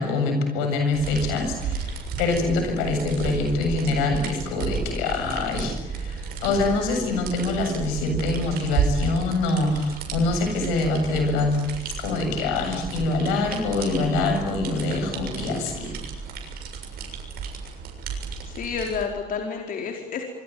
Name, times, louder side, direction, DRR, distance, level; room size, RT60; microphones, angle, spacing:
voice 1, 0.0-11.6 12.0-15.9, left 3 dB, 85° left, 5 dB, 7.6 m, -25 dB
sound 1, 0.9-19.0, right 5 dB, 70° right, 7.1 m, -33 dB
voice 2, 18.5-20.2, left 6 dB, 60° left, 2 dB, 4.5 m, -30 dB
25.5 x 24.5 x 9.5 m, 0.93 s
hypercardioid pair, 60°, 16 cm